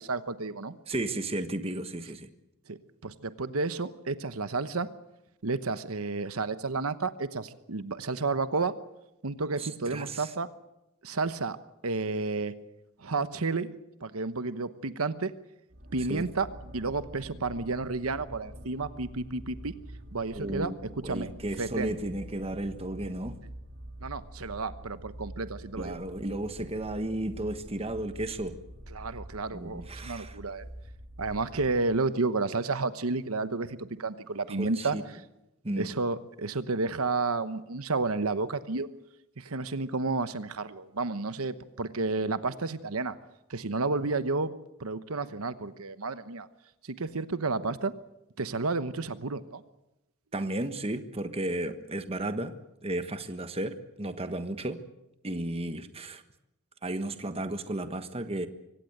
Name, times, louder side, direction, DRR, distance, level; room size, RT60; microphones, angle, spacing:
voice 1, 0.0-0.7 2.7-4.9 5.4-8.7 9.2-10.5 11.0-11.6 11.8-12.5 13.0-13.7 14.0-15.3 15.9-16.5 16.7-19.7 20.1-20.7 21.0-21.3 21.6-21.9 24.0-26.0 28.9-30.6 31.2-35.0 35.8-38.9 39.4-43.2 43.5-44.5 44.8-46.5 46.8-47.9 48.4-49.6, right 3 dB, 90° right, 12 dB, 1.1 m, -31 dB
voice 2, 0.9-2.3 9.6-10.3 16.1-16.3 20.3-20.8 21.0-23.4 25.8-28.6 29.5-30.4 34.6-35.0 35.6-35.9 50.3-52.5 52.8-54.8 55.2-56.2 56.8-58.5, right 1 dB, 30° right, 9 dB, 1.3 m, -34 dB
sound 1, 15.7-32.0, right 1 dB, 55° right, 3.1 m, -46 dB
24.5 x 17.5 x 8.0 m, 0.90 s
head